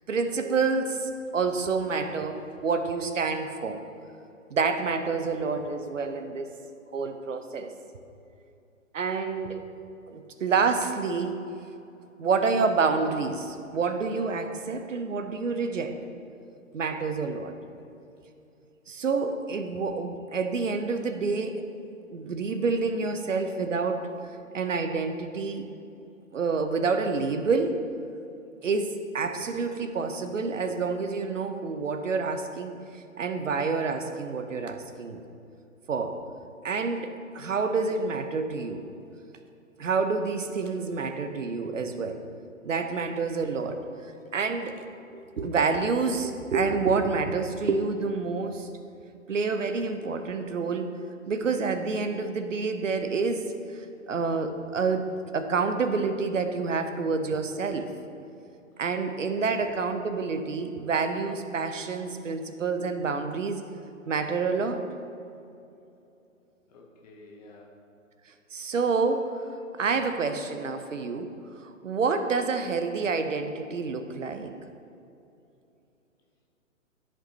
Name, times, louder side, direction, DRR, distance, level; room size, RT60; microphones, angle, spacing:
voice 1, 0.1-3.8 4.5-6.5 6.9-7.7 8.9-9.6 10.1-11.4 12.2-16.0 16.7-17.5 18.9-21.6 22.1-24.1 24.5-25.7 26.3-27.8 28.6-35.2 35.9-36.2 36.6-38.8 39.8-42.2 42.6-43.8 44.3-44.7 45.1-48.7 49.3-50.9 51.3-57.9 58.8-63.6 64.1-64.8 68.5-69.4 69.8-71.3 71.6-74.5, right 4 dB, 65° right, 8 dB, 0.8 m, -28 dB
voice 2, 59.4-59.7 66.7-67.8 69.9-70.1, left 2 dB, 30° left, -1 dB, 1.1 m, -51 dB
13.5 x 5.3 x 2.8 m, 2.7 s
figure-of-eight pair, 130°, 41 cm